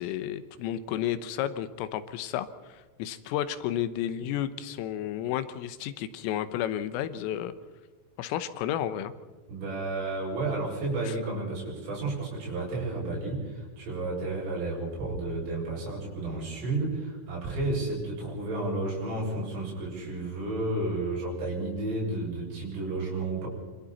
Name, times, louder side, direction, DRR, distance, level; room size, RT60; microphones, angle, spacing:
voice 1, 0.0-2.5 2.7-7.5 8.2-9.1 11.1-11.2, left 11 dB, 85° left, 12 dB, 3.6 m, -32 dB
voice 2, 9.5-23.5, right 2 dB, 75° right, -4 dB, 9.2 m, -32 dB
26.5 x 26.0 x 4.2 m, 1.2 s
omnidirectional pair, 5.8 m